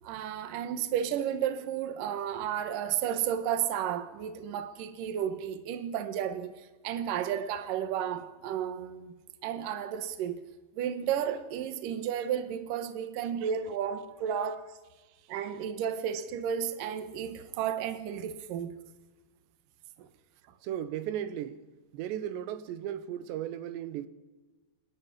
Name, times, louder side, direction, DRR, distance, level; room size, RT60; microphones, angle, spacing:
voice 1, 0.0-6.6 6.8-9.1 9.4-10.4 10.8-14.7 15.3-18.8 20.0-20.1, right 9 dB, 65° right, 2.6 m, -32 dB
voice 2, 20.6-21.6 21.9-24.1, right 10 dB, 90° right, 3.2 m, -35 dB
28.0 x 11.0 x 9.9 m
omnidirectional pair, 5.0 m